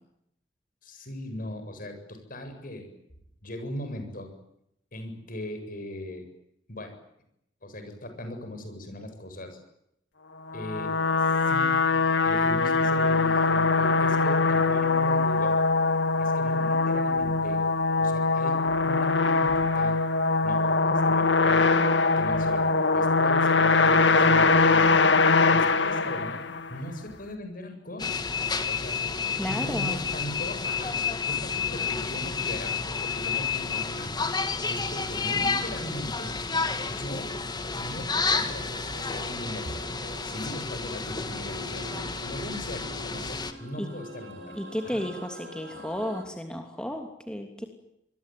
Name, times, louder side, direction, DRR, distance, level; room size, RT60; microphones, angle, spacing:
voice 1, 0.8-2.9 3.4-4.3 4.9-6.3 6.7-6.9 7.6-9.6 10.5-11.8 12.2-15.6 16.2-17.6 18.0-20.0 20.4-21.8 22.2-25.0 25.5-28.2 28.7-29.0 29.3-34.2 34.7-36.4 36.9-37.3 37.7-38.7 39.0-39.8 40.2-44.6 44.9-45.0 45.7-45.8, left 1 dB, 50° left, 7 dB, 7.7 m, -39 dB
sound 1, 10.5-26.8, left 3 dB, 85° left, 1.9 m, -22 dB
sound 2, 28.0-43.5, left 5 dB, 25° left, 2.1 m, -30 dB
voice 2, 29.4-30.0 43.8-43.9 44.6-47.7, equal, 5° left, 3 dB, 2.9 m, -33 dB
sound 3, 37.5-46.2, equal, 85° right, 6.0 m, -45 dB
26.5 x 22.5 x 9.4 m, 0.79 s
head